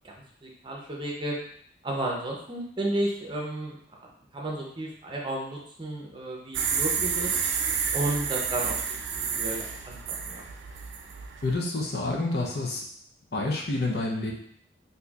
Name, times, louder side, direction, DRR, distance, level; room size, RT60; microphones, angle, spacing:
voice 1, 0.4-1.4 1.8-3.8 4.3-7.3 7.9-10.4, right 1 dB, 25° right, -2 dB, 0.6 m, -32 dB
sound 1, 6.5-11.5, right 6 dB, 75° right, 0.4 m, -30 dB
voice 2, 11.4-12.8 13.3-14.3, left 2 dB, 55° left, -1 dB, 0.6 m, -28 dB
4.2 x 2.6 x 2.4 m, 0.65 s
head